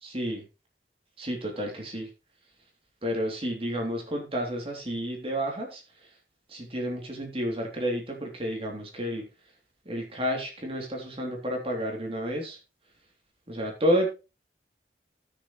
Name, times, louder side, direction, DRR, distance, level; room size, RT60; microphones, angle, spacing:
voice 1, 0.0-0.4 1.2-2.1 3.0-5.8 6.5-9.2 9.8-12.6 13.5-14.1, equal, 30° right, 0 dB, 3.1 m, -30 dB
16.0 x 6.8 x 3.2 m, 0.28 s
head